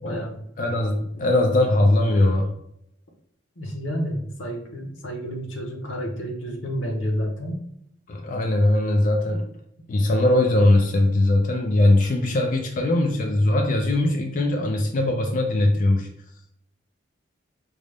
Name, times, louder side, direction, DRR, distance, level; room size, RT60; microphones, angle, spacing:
voice 1, 0.0-0.4 3.6-7.6, equal, 85° left, 2 dB, 0.9 m, -30 dB
voice 2, 0.6-2.5 8.1-9.5 9.9-16.1, left 1 dB, 40° left, 3 dB, 0.4 m, -20 dB
5.1 x 2.1 x 3.3 m, 0.77 s
head